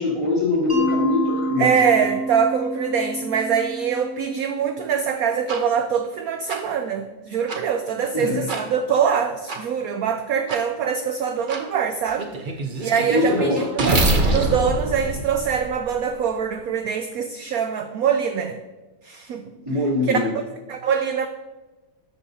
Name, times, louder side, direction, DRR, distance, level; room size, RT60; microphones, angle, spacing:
voice 1, 0.0-1.7 8.1-8.5 13.1-13.7 19.6-20.3, left 3 dB, 15° right, -6 dB, 3.2 m, -22 dB
Mallet percussion, 0.7-5.5, right 2 dB, 5° left, 3.2 m, -29 dB
voice 2, 1.6-12.3 12.8-13.7 14.3-18.6 19.0-19.4 20.1-20.3 20.7-21.3, right 7 dB, 70° right, 7 dB, 0.9 m, -23 dB
sound 1, 5.5-5.6 6.5-6.6 7.5-7.6 8.5-8.6 9.5-9.6 10.5-10.6 11.5-11.6 12.2-16.1, right 2 dB, 40° right, 0.8 m, -24 dB
12.5 x 8.8 x 2.8 m, 1.2 s
omnidirectional pair, 2.0 m